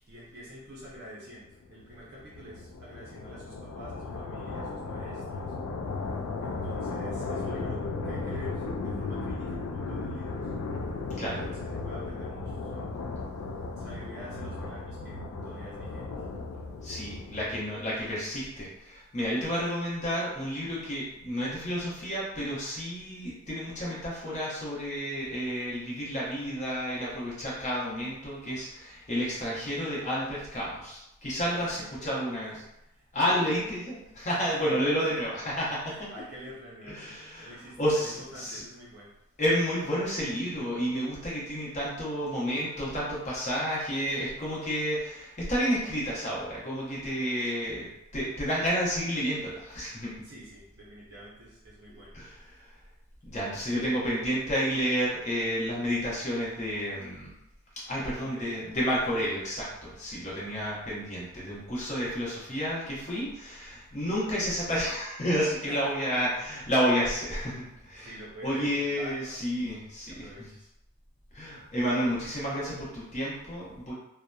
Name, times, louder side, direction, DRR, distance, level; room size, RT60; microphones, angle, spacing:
voice 1, 0.1-5.5 6.4-10.5 11.3-13.0 13.8-16.1 19.6-19.7 31.4-32.2 32.5-32.6 32.9-33.7 34.6-35.2 35.9-39.1 50.2-52.2 57.9-58.5 65.7-65.9 68.0-70.7, right 1 dB, 45° right, -6 dB, 0.5 m, -47 dB
sound 1, 1.5-17.7, left 3 dB, 90° left, 0.3 m, -35 dB
voice 2, 16.8-32.6 33.1-36.1 36.9-38.6 39.4-50.1 52.1-52.7 53.2-57.3 57.9-70.5 71.3-73.9, equal, 35° left, -6 dB, 0.7 m, -31 dB
2.7 x 2.1 x 2.2 m, 0.85 s
head